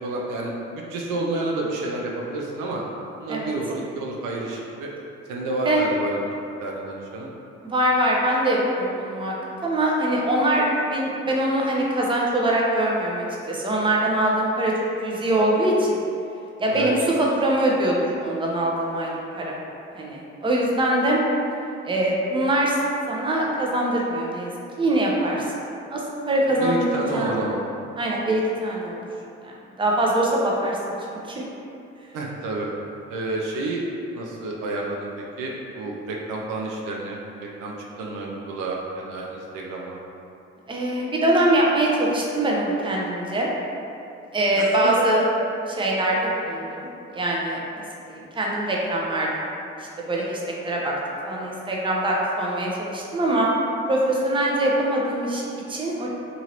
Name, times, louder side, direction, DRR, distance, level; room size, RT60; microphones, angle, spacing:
voice 1, 0.0-2.8 3.2-4.9 5.3-7.3 16.7-16.9 26.5-27.6 32.1-32.7 33.1-33.8 34.1-40.0 44.5-45.0, right 2 dB, 65° right, -2 dB, 0.5 m, -30 dB
voice 2, 7.6-9.3 9.6-14.7 15.0-16.0 16.6-19.6 19.9-21.2 21.8-22.8 23.1-24.5 24.8-25.6 25.9-27.3 28.0-29.0 29.4-29.5 29.8-30.8 31.1-31.4 40.7-43.5 44.3-45.2 45.7-47.8 48.1-49.5 49.8-50.9 51.2-53.5 53.9-56.1, right 1 dB, 15° right, -3 dB, 0.6 m, -23 dB
2.8 x 2.6 x 2.8 m, 2.7 s
hypercardioid pair, 50°, 34 cm